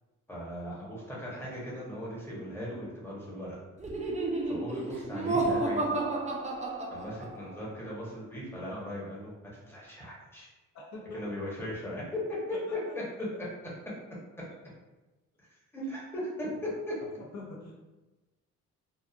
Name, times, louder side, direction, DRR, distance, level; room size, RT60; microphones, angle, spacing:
voice 1, 0.3-3.6 4.5-6.1 6.9-10.5 11.1-12.4 12.7-13.0 15.7-16.9, left 1 dB, 10° left, -6 dB, 0.9 m, -38 dB
Laughter, 3.8-7.5, right 2 dB, 25° right, 0.4 m, -31 dB
voice 2, 10.7-11.4 12.5-12.9 16.4-16.6 17.0-17.7, left 2 dB, 65° left, -3 dB, 0.7 m, -45 dB
2.8 x 2.3 x 2.4 m, 1.1 s
cardioid pair, 90°, 30 cm